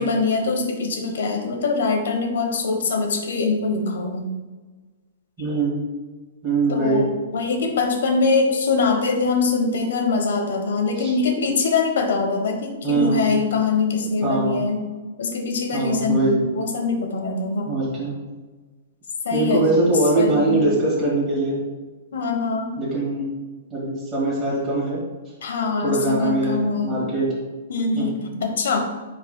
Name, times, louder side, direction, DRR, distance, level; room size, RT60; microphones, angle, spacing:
voice 1, 0.0-4.3 6.7-14.9 15.2-16.2 16.5-17.8 19.2-20.6 22.1-22.8 25.4-27.0 27.7-28.8, left 4 dB, 75° left, 4 dB, 1.2 m, -23 dB
voice 2, 5.4-5.8 6.4-7.0 11.0-11.1 12.8-13.3 14.2-14.6 15.7-16.4 17.7-18.1 19.3-21.6 22.8-23.3 23.7-25.0 25.8-27.3 28.0-28.1, right 2 dB, 10° right, -9 dB, 2.0 m, -22 dB
9.7 x 4.8 x 2.3 m, 1.3 s
hypercardioid pair, 170°, 0 cm